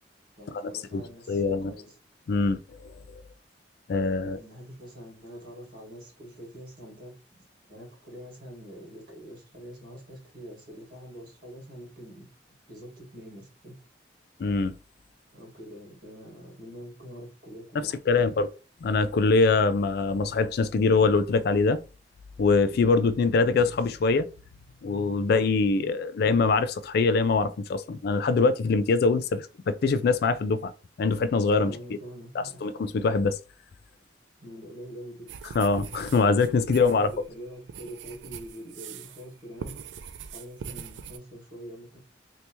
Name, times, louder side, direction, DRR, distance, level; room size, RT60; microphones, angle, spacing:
voice 1, 0.4-2.0 4.2-12.3 12.7-13.8 15.3-18.3 31.5-32.7 34.4-35.3 36.7-39.8 40.3-42.0, equal, 55° right, 1.8 m, -45 dB
voice 2, 1.3-1.7 2.3-2.9 3.9-4.4 14.4-14.7 18.1-18.5 18.8-21.8 22.4-24.3 24.8-30.7 31.0-31.7 32.4-33.4 35.6-37.1, left 4 dB, 60° left, 0.3 m, -23 dB
sound 1, 35.3-39.3 39.6-41.2, right 7 dB, 80° right, 0.3 m, -42 dB
3.3 x 2.8 x 2.9 m
head